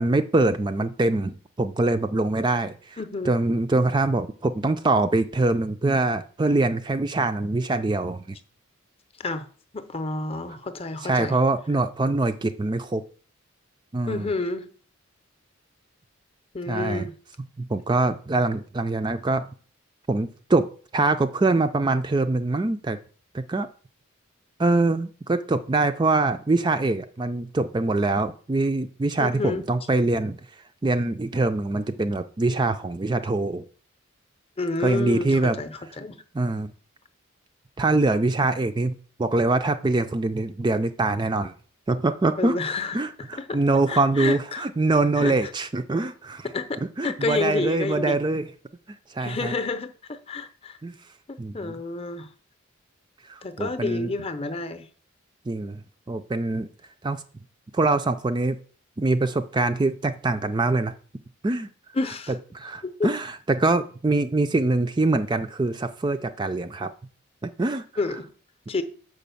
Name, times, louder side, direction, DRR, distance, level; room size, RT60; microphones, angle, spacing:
voice 1, 0.0-3.0 3.3-8.4 11.0-13.0 13.9-14.3 16.7-17.1 17.6-19.4 20.1-20.7 20.9-23.0 23.3-23.7 24.6-30.4 30.8-33.7 34.8-35.6 36.3-36.7 37.8-38.9 39.2-41.5 41.9-42.6 42.9-46.5 47.0-48.5 49.1-49.5 50.8-50.9 51.4-51.8 53.3-54.1 55.5-56.7 57.0-57.2 57.7-58.6 59.0-60.9 61.4-61.7 62.5-66.9 67.4-67.8, right 2 dB, 20° right, 0.4 m, -24 dB
voice 2, 3.0-3.4 9.2-9.5 9.7-11.4 11.7-11.8 14.1-14.7 16.5-17.1 29.2-29.9 34.6-36.1 42.4-44.7 45.2-45.5 46.5-46.7 47.0-48.2 49.2-50.8 51.3-52.3 53.4-54.9 61.9-62.4 62.8-63.1 68.0-68.3 68.7-68.8, left 3 dB, 25° left, 0.7 m, -30 dB
6.4 x 5.1 x 6.9 m
head